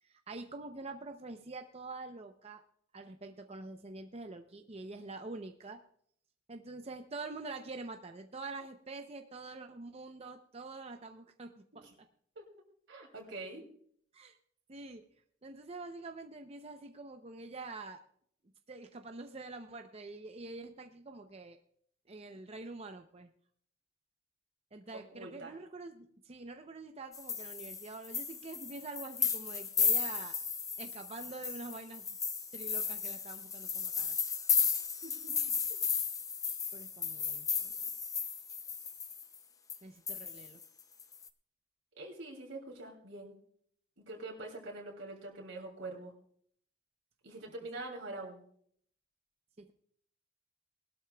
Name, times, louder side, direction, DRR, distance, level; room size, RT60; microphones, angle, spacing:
voice 1, 0.0-2.6 2.9-5.8 6.5-11.9 14.1-14.4 14.7-15.0 15.4-18.0 18.7-21.6 22.1-23.3 24.7-30.4 30.8-32.0 32.5-34.2 36.7-37.8 39.8-40.6 49.6-49.7, right 3 dB, 35° right, 6 dB, 0.7 m, -46 dB
voice 2, 12.9-13.6 24.9-25.5 35.0-35.8 42.0-43.4 44.1-46.1 47.2-48.4, right 2 dB, 85° right, -1 dB, 2.8 m, -45 dB
sound 1, 27.1-39.4 39.7-39.8 40.1-41.3, left 6 dB, 20° left, 0.5 m, -34 dB
20.0 x 12.5 x 2.3 m, 0.63 s
head